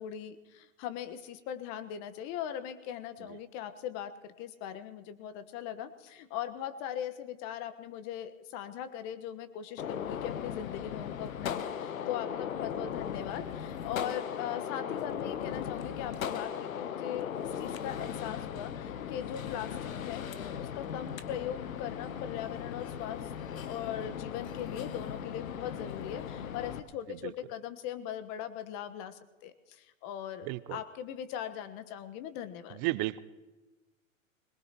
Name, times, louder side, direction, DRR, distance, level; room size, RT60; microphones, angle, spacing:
voice 1, 0.0-20.2 20.6-32.8, left 10 dB, 45° left, 11 dB, 1.3 m, -40 dB
Gunshot gunfire, 9.8-26.8, left 8 dB, 80° left, 1.1 m, -38 dB
voice 2, 30.4-30.8 32.7-33.2, right 19 dB, 40° right, 17 dB, 0.7 m, -34 dB
22.0 x 20.0 x 3.0 m, 1.2 s
hypercardioid pair, 110°, 41 cm